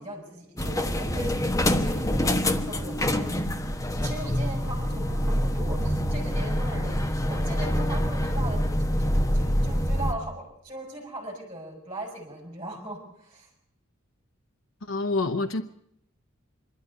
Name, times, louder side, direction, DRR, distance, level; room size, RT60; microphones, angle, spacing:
voice 1, 0.0-3.5 3.9-8.7 9.0-13.5, right 1 dB, 25° right, 1 dB, 5.6 m, -39 dB
sound 1, 0.6-10.1, equal, 15° left, 1.2 m, -26 dB
voice 2, 14.9-15.6, left 3 dB, 70° left, 7 dB, 0.9 m, -26 dB
25.5 x 12.5 x 9.5 m, 0.76 s
head